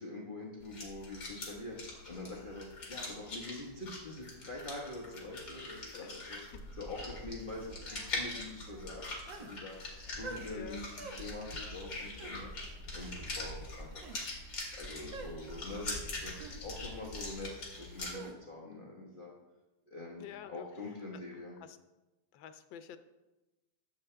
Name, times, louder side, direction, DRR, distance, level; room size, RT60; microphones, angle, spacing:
voice 1, 0.0-6.4 6.8-14.2 14.8-19.3 19.9-21.6, left 2 dB, 30° left, -4 dB, 1.4 m, -45 dB
sound 1, 0.6-18.1, left 2 dB, 60° left, 2.6 m, -43 dB
sound 2, 6.5-9.4 9.7-17.4, equal, 50° right, 0.4 m, -50 dB
sound 3, 9.3-9.5 10.2-10.5 11.0-11.2 12.1-12.3 12.9-13.1 13.9-14.2 15.1-15.3 16.4-16.6 18.1-18.3, right 4 dB, 85° right, 1.9 m, -45 dB
voice 2, 10.5-10.8 20.2-20.7 21.6-21.8 22.3-23.0, left 9 dB, 90° left, 10 dB, 1.4 m, -48 dB
12.0 x 7.4 x 3.3 m, 1.0 s
omnidirectional pair, 2.0 m